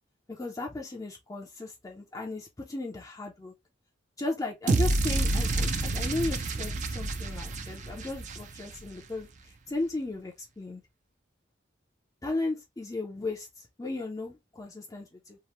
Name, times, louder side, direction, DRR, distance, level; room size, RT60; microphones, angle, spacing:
voice 1, 0.3-3.5 4.2-10.8 12.2-15.4, left 2 dB, 20° left, 0.4 m, -36 dB
sound 1, 4.7-8.9, right 2 dB, 40° right, 0.4 m, -28 dB
2.9 x 2.1 x 2.9 m
head